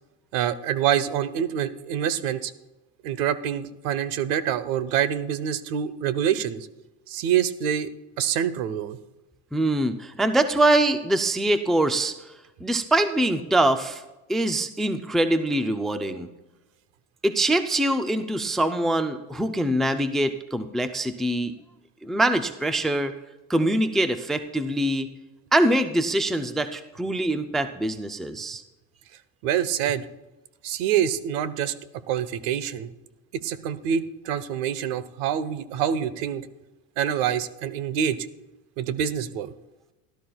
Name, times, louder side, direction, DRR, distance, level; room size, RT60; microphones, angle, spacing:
voice 1, 0.3-2.5 3.0-6.7 7.1-7.9 8.2-9.0 29.4-30.0 30.6-31.7 32.1-32.9 33.3-36.5 37.0-38.2 38.8-39.5, right 9 dB, 75° right, 16 dB, 0.9 m, -26 dB
voice 2, 9.5-12.3 12.6-14.0 14.3-16.3 17.2-21.5 22.0-23.1 23.5-25.1 25.5-28.6, right 1 dB, ahead, 9 dB, 0.3 m, -23 dB
17.0 x 11.5 x 2.3 m, 1.1 s
supercardioid pair, 130°, 39 cm